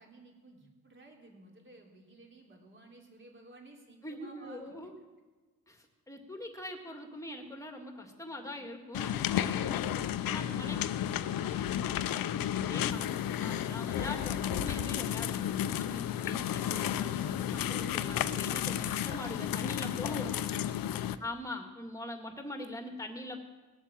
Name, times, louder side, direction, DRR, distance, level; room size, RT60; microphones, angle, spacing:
voice 1, 0.0-4.9 8.2-8.7 10.4-12.5 19.2-21.3, right 2 dB, 30° right, 0 dB, 3.6 m, -56 dB
voice 2, 4.0-4.9 5.7-9.8 10.2-10.8 12.6-20.4 21.2-23.4, left 1 dB, 10° left, 4 dB, 2.0 m, -42 dB
sound 1, 8.9-21.2, left 11 dB, 65° left, 0.7 m, -32 dB
20.0 x 8.2 x 7.5 m, 1.3 s
cardioid pair, 135°, 37 cm